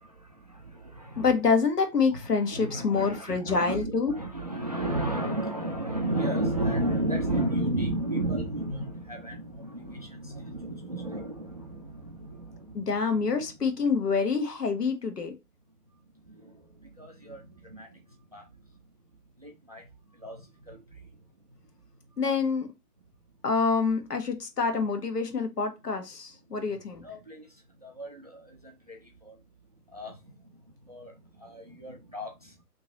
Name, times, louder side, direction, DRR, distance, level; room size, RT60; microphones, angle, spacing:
voice 1, 0.0-1.3 2.4-13.4 16.2-18.5 19.4-21.1 26.7-26.8 27.0-29.4 29.9-32.5, right 1 dB, 25° right, 0.4 m, -34 dB
voice 2, 1.2-4.2 12.7-15.4 22.2-22.7 23.4-27.1, left 5 dB, 80° left, 1.2 m, -26 dB
3.0 x 2.8 x 3.8 m
figure-of-eight pair, 140°, 47 cm